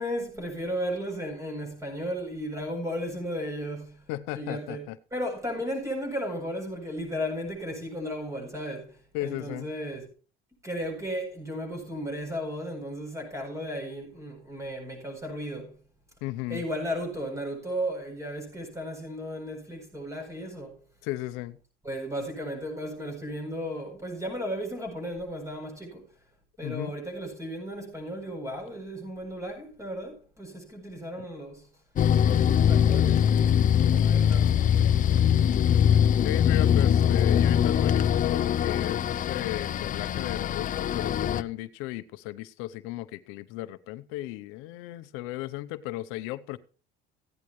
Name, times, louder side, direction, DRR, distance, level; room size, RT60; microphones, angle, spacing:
voice 1, 0.0-4.0 4.3-4.8 5.1-10.1 10.6-15.8 16.5-20.8 21.8-26.0 26.6-31.7 32.3-35.0, equal, 15° right, 8.0 m, -35 dB
voice 2, 4.1-5.0 9.1-9.7 16.2-16.6 21.0-21.6 26.6-26.9 36.2-46.6, left 16 dB, 80° left, 0.8 m, -35 dB
sound 1, 32.0-41.4, left 9 dB, 40° left, 0.6 m, -22 dB
16.0 x 10.5 x 3.1 m
supercardioid pair, 105°, 21 cm